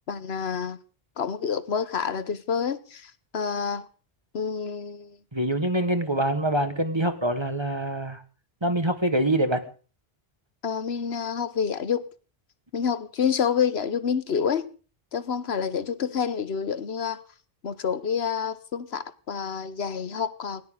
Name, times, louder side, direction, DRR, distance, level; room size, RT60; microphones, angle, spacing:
voice 1, 0.1-0.8 1.2-3.9 4.3-5.2 10.6-12.1 12.7-14.7 15.1-17.2 17.6-20.6, left 7 dB, 85° left, 1.3 m, -28 dB
voice 2, 5.3-8.2 8.6-9.6, right 1 dB, 25° right, 1.6 m, -25 dB
19.5 x 18.0 x 3.8 m
omnidirectional pair, 1.0 m